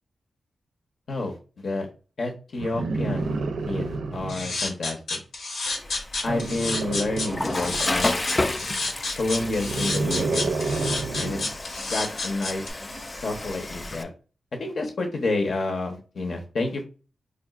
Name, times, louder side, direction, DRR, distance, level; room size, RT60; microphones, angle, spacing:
voice 1, 1.1-1.9 2.2-5.2 6.2-8.2 9.2-11.4 11.9-12.6 13.2-14.1 14.5-16.8, left 2 dB, 60° left, 2 dB, 0.9 m, -29 dB
sound 1, 2.6-4.6 6.2-8.0 9.3-11.6 12.9-13.0, right 3 dB, 80° right, 0.4 m, -30 dB
sound 2, 4.3-12.7, left 3 dB, 85° left, 1.3 m, -30 dB
Water / Toilet flush, 5.7-14.0, left 2 dB, 25° left, 0.4 m, -32 dB
4.9 x 2.4 x 2.4 m, 0.34 s
cardioid pair, 85°, 0 cm